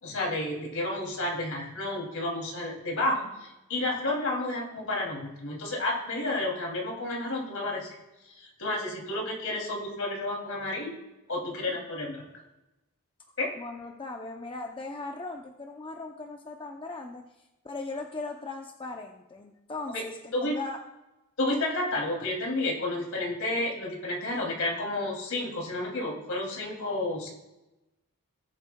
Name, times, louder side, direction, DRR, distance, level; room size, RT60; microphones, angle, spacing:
voice 1, 0.0-7.9 8.4-10.9 11.3-12.2 13.4-13.5 19.9-20.0 20.3-20.6 21.4-27.3, left 1 dB, 65° left, -1 dB, 2.9 m, -31 dB
voice 2, 13.6-17.2 17.6-20.8, left 3 dB, 25° left, 3 dB, 0.6 m, -38 dB
19.0 x 8.0 x 2.3 m, 0.98 s
head